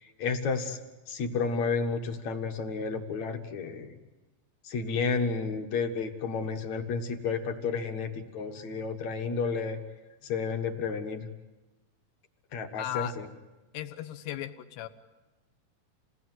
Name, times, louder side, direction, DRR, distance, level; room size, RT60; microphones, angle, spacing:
voice 1, 0.2-0.8 1.1-3.9 4.6-9.8 10.2-11.3 12.5-13.3, left 5 dB, 55° left, 6 dB, 2.3 m, -31 dB
voice 2, 12.8-13.1 13.7-14.9, left 12 dB, 80° left, 9 dB, 3.0 m, -36 dB
27.5 x 19.0 x 9.4 m, 1.1 s
omnidirectional pair, 4.7 m